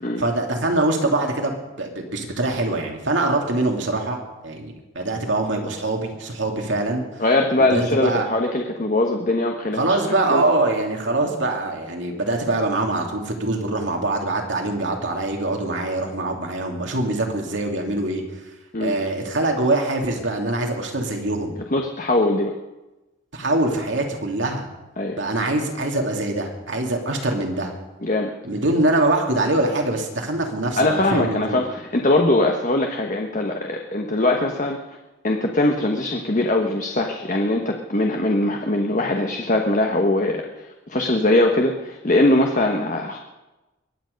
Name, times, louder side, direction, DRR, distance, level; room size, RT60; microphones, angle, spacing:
voice 1, 0.2-7.0 7.6-8.3 9.7-18.2 18.8-21.6 23.3-24.7 25.2-27.7 28.4-31.6, right 2 dB, 75° right, 1 dB, 2.6 m, -23 dB
voice 2, 7.2-10.4 18.7-18.9 21.7-22.5 25.0-25.2 28.0-28.3 30.8-34.8 35.2-43.2, left 2 dB, 40° left, 2 dB, 1.2 m, -21 dB
23.0 x 9.2 x 5.2 m, 1.0 s
head